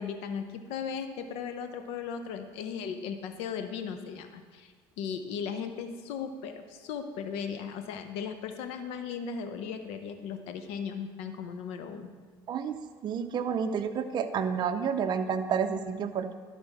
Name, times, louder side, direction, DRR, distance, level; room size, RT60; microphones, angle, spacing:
voice 1, 0.0-12.1, left 6 dB, 80° left, 8 dB, 0.7 m, -37 dB
voice 2, 12.5-16.3, right 7 dB, 45° right, 7 dB, 0.5 m, -30 dB
11.5 x 4.2 x 5.8 m, 1.5 s
supercardioid pair, 100°, 10 cm